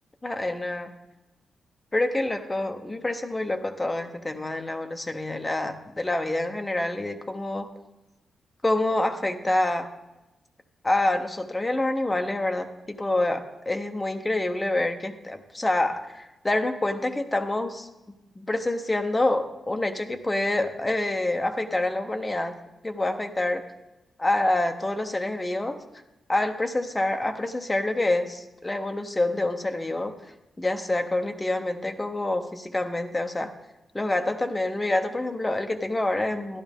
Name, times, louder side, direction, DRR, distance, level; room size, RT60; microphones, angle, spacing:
voice 1, 0.2-0.9 1.9-7.7 8.6-9.9 10.8-17.9 18.4-22.5 22.8-23.6 24.2-25.8 26.3-30.1 30.6-33.5 33.9-36.6, left 2 dB, 15° left, 6 dB, 0.7 m, -27 dB
12.5 x 11.0 x 3.5 m, 1.0 s
wide cardioid pair, 175°, 0 cm